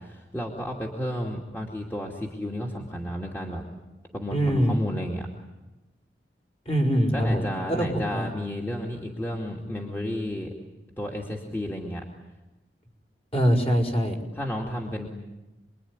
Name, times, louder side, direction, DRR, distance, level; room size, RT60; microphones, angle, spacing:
voice 1, 0.0-3.6 4.1-4.4 4.7-5.3 7.1-10.5 11.0-12.0 14.3-15.1, equal, 15° left, -1 dB, 2.6 m, -32 dB
voice 2, 4.3-4.8 6.6-8.3 13.3-14.2, equal, 35° left, 2 dB, 5.0 m, -23 dB
28.0 x 22.0 x 9.7 m, 1.1 s
head